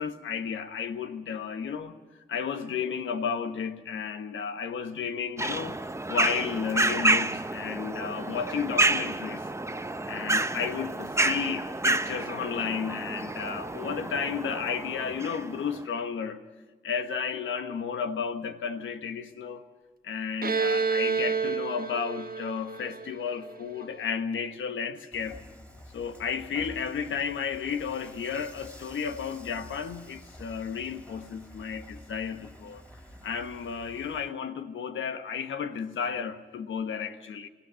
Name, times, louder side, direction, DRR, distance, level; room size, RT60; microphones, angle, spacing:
voice 1, 0.0-2.0 2.3-5.8 6.1-9.4 10.1-16.4 16.8-19.6 20.0-25.4 25.9-32.8 33.2-37.5, left 6 dB, 90° left, 8 dB, 1.3 m, -33 dB
sound 1, 5.4-15.8, right 2 dB, 15° right, 0.8 m, -29 dB
Bowed string instrument, 20.4-24.0, right 5 dB, 50° right, 1.2 m, -29 dB
Dishes pots and pans / Frying (food), 25.1-34.3, equal, 5° left, 3.7 m, -49 dB
18.0 x 16.0 x 9.4 m, 1.3 s
cardioid pair, 60°, 19 cm